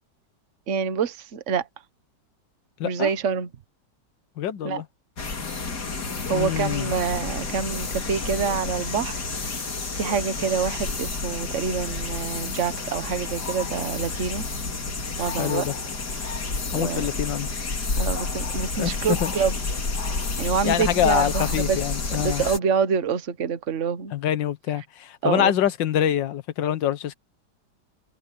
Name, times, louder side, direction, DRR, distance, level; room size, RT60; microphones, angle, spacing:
voice 1, 0.7-1.7 2.8-3.5 4.6-4.8 6.3-9.2 9.6-9.7 9.9-14.4 15.2-15.7 16.2-16.3 16.7-17.1 17.9-19.5 20.4-21.8 22.2-24.1 25.2-25.5, right 6 dB, 45° right, 1.4 m, -26 dB
voice 2, 2.8-3.1 4.4-4.8 6.3-6.9 15.4-15.7 16.7-17.5 18.8-19.3 20.6-22.4 24.1-27.1, left 10 dB, 90° left, 1.7 m, -25 dB
sound 1, 5.2-22.6, left 3 dB, 65° left, 3.4 m, -30 dB
omnidirectional pair, 1.9 m